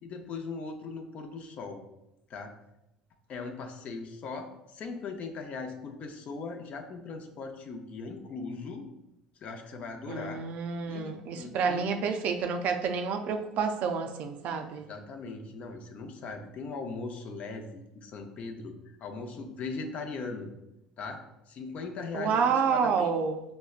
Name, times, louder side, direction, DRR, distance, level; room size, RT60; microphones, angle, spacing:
voice 1, 0.0-1.8 2.3-2.5 3.3-8.9 9.4-10.4 10.9-11.8 14.8-20.5 21.0-21.2 21.5-23.1, left 4 dB, 50° left, 5 dB, 0.6 m, -39 dB
voice 2, 10.1-14.9 22.1-23.4, right 6 dB, 60° right, 6 dB, 0.4 m, -29 dB
5.2 x 2.1 x 2.4 m, 0.88 s
hypercardioid pair, 70°, 3 cm